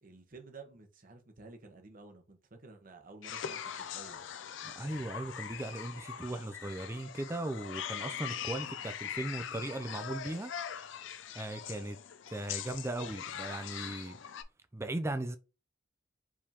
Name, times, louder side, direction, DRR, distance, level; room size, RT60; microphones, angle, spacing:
voice 1, 0.0-4.2, right 3 dB, 45° right, 1.0 m, -52 dB
sound 1, 3.2-14.4, left 9 dB, 65° left, 0.4 m, -42 dB
voice 2, 4.6-10.5 11.3-12.0 12.3-14.2 14.7-15.4, right 1 dB, 15° right, 0.4 m, -38 dB
4.8 x 3.5 x 2.9 m
head